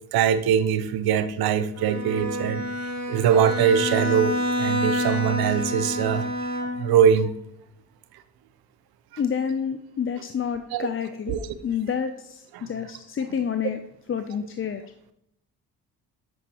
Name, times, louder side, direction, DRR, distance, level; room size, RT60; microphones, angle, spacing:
voice 1, 0.1-2.7 3.1-7.3 10.7-10.9 11.3-11.4 12.5-12.7, right 8 dB, 75° right, 12 dB, 0.7 m, -22 dB
Bowed string instrument, 1.8-7.1, left 1 dB, 45° right, 1.4 m, -28 dB
voice 2, 9.2-13.8 14.1-14.8, left 7 dB, 35° left, 8 dB, 0.5 m, -29 dB
8.9 x 5.2 x 2.9 m, 0.76 s
supercardioid pair, 55°, 37 cm